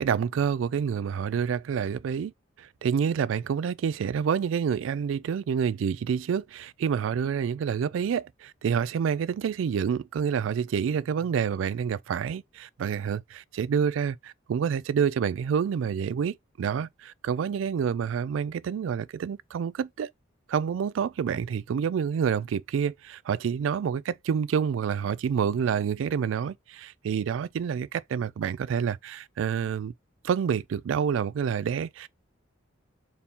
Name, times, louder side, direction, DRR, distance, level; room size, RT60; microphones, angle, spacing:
voice 1, 0.0-2.3 2.6-20.1 20.5-29.9 30.2-32.1, right 7 dB, 70° right, 0.3 m, -28 dB
4.1 x 2.8 x 3.5 m
head